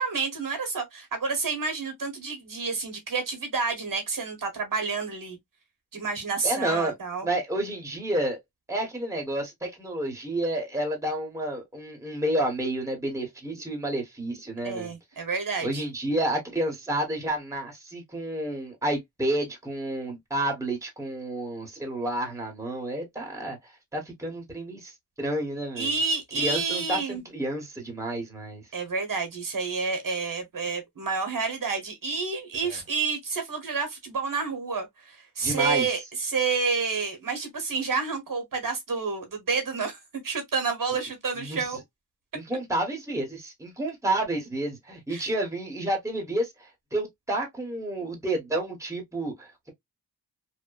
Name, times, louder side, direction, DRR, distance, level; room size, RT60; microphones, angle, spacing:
voice 1, 0.0-5.4 5.9-7.3 14.6-15.8 25.8-27.2 28.7-41.8 45.1-45.3, right 4 dB, 55° right, 1.0 m, -29 dB
voice 2, 6.4-6.9 7.2-8.4 8.7-14.9 15.6-23.6 23.9-24.9 25.2-26.0 26.3-28.6 32.6-32.8 35.4-35.9 41.4-41.8 42.3-49.7, right 1 dB, 10° right, 1.0 m, -30 dB
2.8 x 2.1 x 2.3 m
wide cardioid pair, 95°, 39 cm